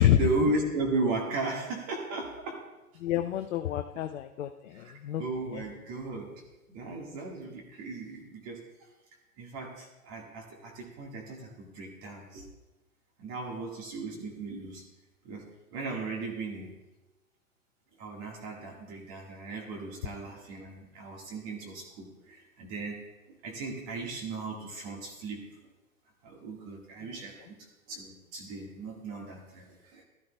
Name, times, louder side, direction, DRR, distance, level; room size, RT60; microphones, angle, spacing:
voice 1, 0.0-2.6 4.7-6.4 6.7-8.9 9.4-12.5 13.2-14.8 15.2-16.7 18.0-25.7 26.2-27.6 27.9-30.0, right 3 dB, 35° right, 0 dB, 1.7 m, -36 dB
voice 2, 3.0-5.6 27.0-27.1, left 12 dB, 60° left, 7 dB, 0.6 m, -28 dB
15.5 x 12.5 x 2.3 m, 1.1 s
figure-of-eight pair, 110°, 44 cm